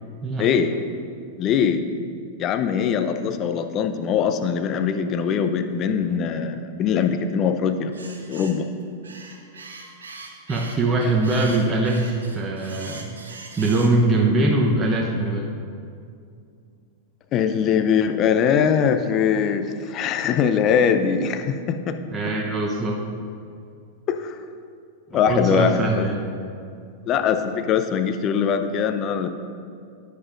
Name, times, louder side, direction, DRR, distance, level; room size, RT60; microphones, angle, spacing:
voice 1, 0.4-0.7 1.4-1.9 2.4-7.9 8.3-8.7 17.3-22.0 24.1-24.4 25.1-26.1 27.1-29.3, left 7 dB, 35° left, 8 dB, 0.6 m, -22 dB
sound 1, 7.9-8.6 9.0-14.0, right 4 dB, 75° right, 0.9 m, -41 dB
voice 2, 10.5-13.1 13.6-15.5 22.1-23.0 25.1-26.2, right 2 dB, 20° right, -1 dB, 0.8 m, -22 dB
11.0 x 9.4 x 2.5 m, 2.4 s
figure-of-eight pair, 95°, 0 cm